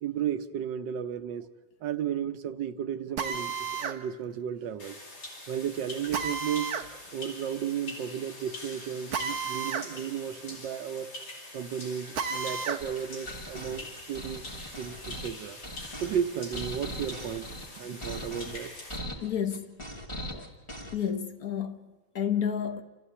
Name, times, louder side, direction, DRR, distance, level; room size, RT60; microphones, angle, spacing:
voice 1, 0.0-1.5 1.8-5.0 5.5-6.8 7.1-11.1 11.5-14.4 14.8-15.6 16.0-17.5 17.8-18.7, right 9 dB, 75° right, 1.5 m, -34 dB
Drill, 3.2-4.0 6.1-6.9 9.1-9.9 10.2-10.3 12.1-12.8, right 5 dB, 45° right, 1.1 m, -32 dB
sound 1, 4.8-19.0, left 2 dB, 85° left, 4.5 m, -44 dB
sound 2, 12.8-21.1, equal, 15° left, 2.2 m, -40 dB
voice 2, 19.0-19.8 20.3-20.5 20.9-22.8, left 8 dB, 55° left, 1.4 m, -31 dB
29.0 x 14.5 x 8.3 m
omnidirectional pair, 2.0 m